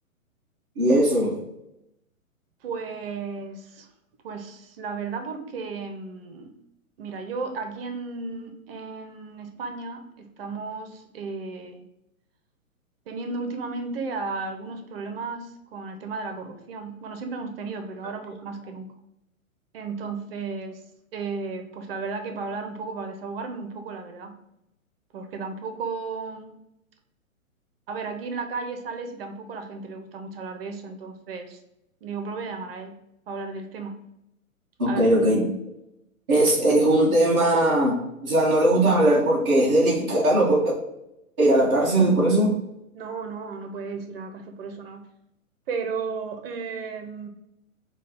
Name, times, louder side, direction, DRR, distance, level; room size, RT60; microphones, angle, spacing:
voice 1, 0.8-1.4 34.8-35.5 36.3-38.0 38.2-40.6 41.4-42.5, right 1 dB, 10° right, -9 dB, 0.3 m, -19 dB
voice 2, 2.6-3.9 4.2-6.5 7.0-11.9 13.1-18.9 19.7-20.8 21.1-24.4 25.1-26.5 27.9-31.6 32.0-33.0 33.3-34.0 34.9-35.2 42.9-45.1 45.7-47.3, right 4 dB, 45° right, 6 dB, 0.7 m, -34 dB
4.1 x 2.3 x 4.1 m, 0.86 s
hypercardioid pair, 125°, 42 cm